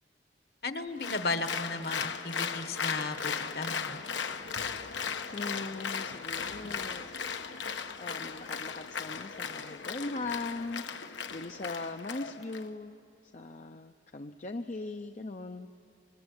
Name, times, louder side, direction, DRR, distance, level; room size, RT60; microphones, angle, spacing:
voice 1, 0.6-4.0, left 3 dB, 60° left, 9 dB, 1.3 m, -35 dB
Applause, 1.0-12.6, left 6 dB, 85° left, 1.2 m, -37 dB
voice 2, 5.3-7.1 7.4-13.0 13.3-15.7, left 3 dB, 40° left, 5 dB, 0.6 m, -40 dB
24.0 x 22.5 x 9.6 m, 2.5 s
head